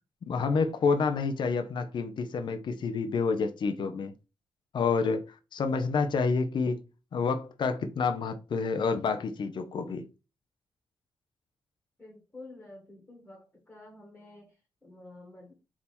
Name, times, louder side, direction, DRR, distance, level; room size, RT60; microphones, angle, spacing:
voice 1, 0.2-4.1 4.7-5.2 5.5-6.8 7.1-10.0, left 4 dB, 55° left, 0.6 m, -28 dB
voice 2, 12.0-15.5, left 2 dB, 15° left, 1.6 m, -50 dB
3.5 x 2.8 x 4.2 m
cardioid pair, 80°, 9 cm